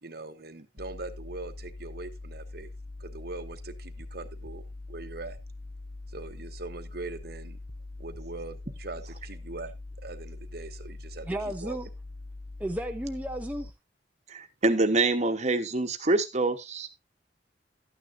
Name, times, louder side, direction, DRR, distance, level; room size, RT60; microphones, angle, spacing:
voice 1, 0.0-2.7 3.0-5.4 6.1-7.6 8.0-11.8, right 3 dB, 60° right, 1.1 m, -41 dB
sound 1, 0.8-13.7, left 2 dB, 30° left, 0.6 m, -43 dB
voice 2, 11.3-11.9 12.6-13.7, right 1 dB, 10° right, 0.6 m, -33 dB
voice 3, 14.3-16.9, right 2 dB, 40° right, 1.2 m, -26 dB
12.5 x 9.5 x 2.6 m
head